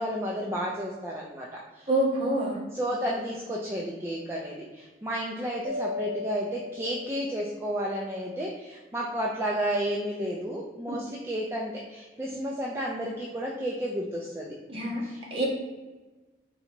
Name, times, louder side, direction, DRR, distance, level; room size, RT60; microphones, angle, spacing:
voice 1, 0.0-1.9 2.7-14.5 15.0-15.4, equal, 15° right, -3 dB, 0.4 m, -32 dB
voice 2, 1.9-2.6 14.7-15.0 15.3-15.4, right 1 dB, 30° right, -4 dB, 1.1 m, -26 dB
Mallet percussion, 5.6-7.7, left 3 dB, 90° right, 0.8 m, -36 dB
3.9 x 2.9 x 4.3 m, 1.2 s
head